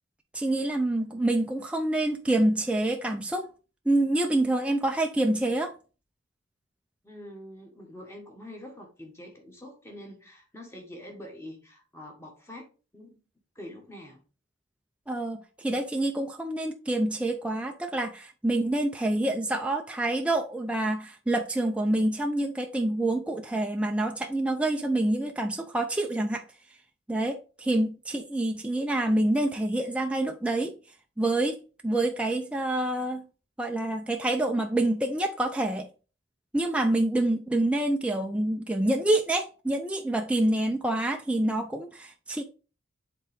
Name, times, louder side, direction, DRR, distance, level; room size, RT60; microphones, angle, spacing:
voice 1, 0.3-3.5 3.9-5.7 15.1-26.4 27.1-30.8 31.2-31.6 31.8-33.3 33.6-35.9 36.5-42.4, right 1 dB, 5° right, 0.4 m, -27 dB
voice 2, 7.0-13.1 13.5-14.2, left 1 dB, 15° left, 1.6 m, -45 dB
7.8 x 3.8 x 3.6 m
head